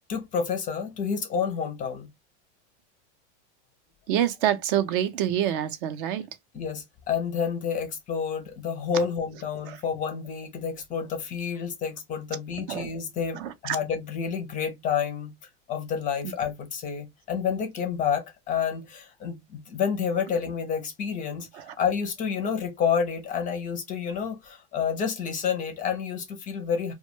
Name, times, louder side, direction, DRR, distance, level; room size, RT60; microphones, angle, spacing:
voice 1, 0.1-2.1 6.5-15.3 15.7-26.9, left 7 dB, 25° left, 0.4 m, -29 dB
voice 2, 4.1-6.2 9.7-9.8 12.7-12.9 13.4-13.8 16.2-16.3 21.5-21.7, right 11 dB, 50° right, 0.5 m, -27 dB
2.2 x 2.1 x 2.8 m
supercardioid pair, 140°, 35 cm